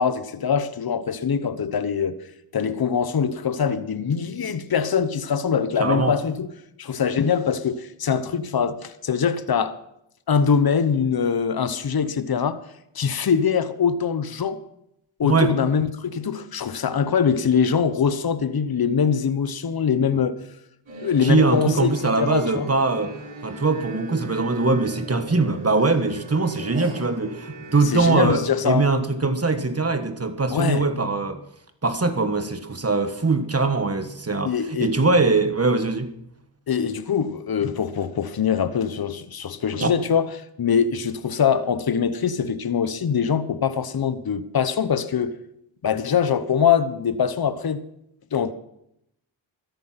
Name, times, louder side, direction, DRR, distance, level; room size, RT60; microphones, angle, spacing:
voice 1, 0.0-2.2 2.5-6.5 6.8-9.8 10.3-12.6 12.9-14.6 15.2-20.4 21.0-21.9 22.2-22.7 27.8-28.9 30.5-30.9 34.4-35.0 36.7-40.3 40.6-45.4 45.8-47.8 48.3-48.5, left 7 dB, 50° left, 1.1 m, -23 dB
voice 2, 5.8-6.2 15.2-15.6 21.2-23.1 23.4-31.4 31.8-36.1 39.8-39.9, right 3 dB, 30° right, 1.5 m, -22 dB
sound 1, 20.9-28.1, right 2 dB, 75° right, 6.3 m, -38 dB
13.5 x 11.0 x 5.9 m
cardioid pair, 45°, 48 cm